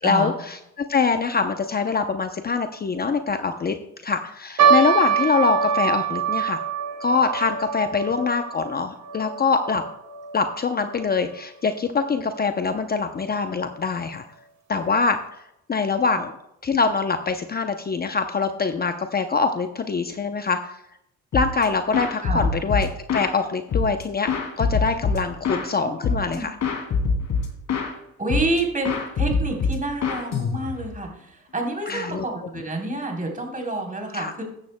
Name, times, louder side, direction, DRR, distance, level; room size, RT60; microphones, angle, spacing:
voice 1, 0.0-3.8 4.0-6.6 7.0-9.8 10.3-14.2 14.7-15.4 15.7-16.3 16.6-20.8 21.3-24.3 24.6-26.6 31.9-32.3 34.1-34.3, left 4 dB, 30° left, 7 dB, 0.7 m, -24 dB
sound 1, 4.6-11.1 11.3-11.4 12.2-12.5 13.1-13.2 13.5-13.7, right 7 dB, 75° right, 3.1 m, -24 dB
sound 2, 21.3-21.6 21.9-23.3 23.7-25.7 26.0-26.4 26.6-27.9 28.3-28.6 28.8-30.9, left 4 dB, 65° left, 2.7 m, -24 dB
voice 2, 25.8-26.5 28.2-28.9 29.2-34.4, right 2 dB, 25° right, 0 dB, 3.5 m, -28 dB
14.0 x 11.0 x 2.2 m, 0.81 s
cardioid pair, 90°, 30 cm